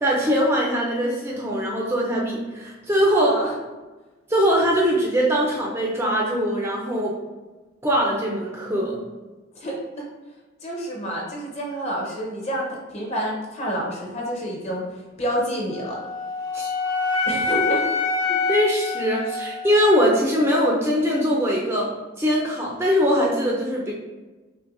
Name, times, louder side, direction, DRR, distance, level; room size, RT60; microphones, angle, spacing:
voice 1, 0.0-3.4 4.3-7.1 7.8-9.0 16.5-16.7 18.3-21.9 22.2-23.9, equal, 10° right, -3 dB, 0.4 m, -21 dB
voice 2, 3.2-3.5 9.5-10.1 10.6-16.0 17.3-17.8, equal, 35° left, -2 dB, 0.8 m, -28 dB
Wind instrument woodwind instrument, 15.7-19.9, left 4 dB, 85° left, 0.5 m, -26 dB
5.7 x 2.2 x 2.5 m, 1.2 s
head